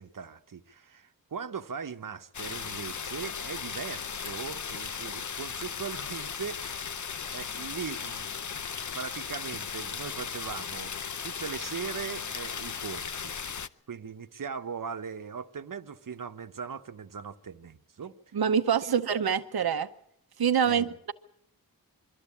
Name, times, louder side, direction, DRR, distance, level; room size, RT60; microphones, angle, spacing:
voice 1, 0.0-6.9 7.3-8.5 8.9-11.0 11.2-13.3 13.9-18.1 18.8-19.0 20.6-21.0, right 6 dB, 60° right, 1.0 m, -39 dB
sound 1, 2.3-13.7, left 6 dB, 55° left, 0.7 m, -37 dB
voice 2, 18.3-19.9 20.4-21.1, right 7 dB, 90° right, 0.8 m, -25 dB
23.0 x 14.0 x 8.5 m
wide cardioid pair, 95°, 36 cm